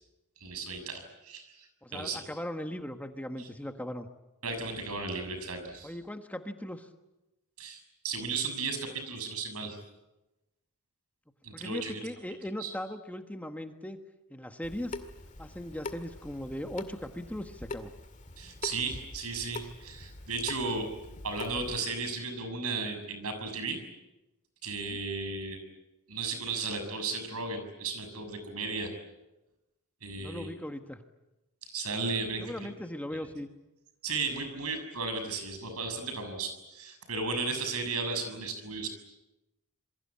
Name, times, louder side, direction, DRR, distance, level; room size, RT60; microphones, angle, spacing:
voice 1, 0.4-1.6 1.9-2.2 3.4-3.5 4.4-6.0 7.6-9.8 11.4-12.0 12.6-12.7 18.4-20.9 21.2-23.8 24.6-25.6 26.1-28.9 30.0-30.6 31.6-32.7 34.0-38.9, right 4 dB, 75° right, 8 dB, 6.7 m, -35 dB
voice 2, 1.8-4.1 5.8-6.9 11.5-14.0 14.3-15.0 15.4-17.9 24.9-25.0 30.2-31.0 32.4-33.5, left 1 dB, 5° left, 6 dB, 1.4 m, -39 dB
Water tap faucet / Sink (filling or washing) / Drip, 14.6-21.8, left 2 dB, 35° left, 2.0 m, -44 dB
27.5 x 23.0 x 8.6 m, 0.98 s
head